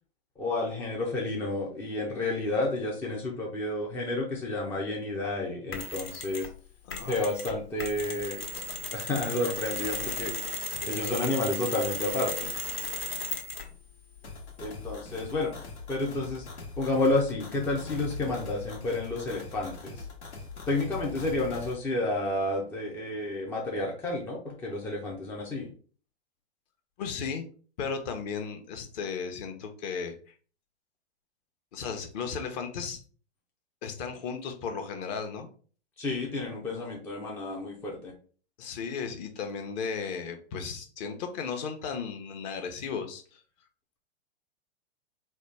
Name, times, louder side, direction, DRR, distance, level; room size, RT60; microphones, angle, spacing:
voice 1, 0.4-6.5 7.0-8.4 8.9-10.5 10.8-12.5 14.6-15.5 15.9-16.4 16.8-20.0 20.7-25.7 36.0-38.1, left 2 dB, 5° left, -2 dB, 0.3 m, -30 dB
Mechanisms, 5.7-6.5 6.9-13.8, left 2 dB, 65° left, 1.1 m, -35 dB
sound 1, 14.2-21.7, left 4 dB, 80° left, 1.1 m, -42 dB
voice 2, 27.0-27.5 27.8-30.3 31.7-33.0 33.8-35.5 38.6-43.4, left 6 dB, 40° left, 6 dB, 0.8 m, -35 dB
4.1 x 2.2 x 3.2 m, 0.41 s
hypercardioid pair, 110°, 33 cm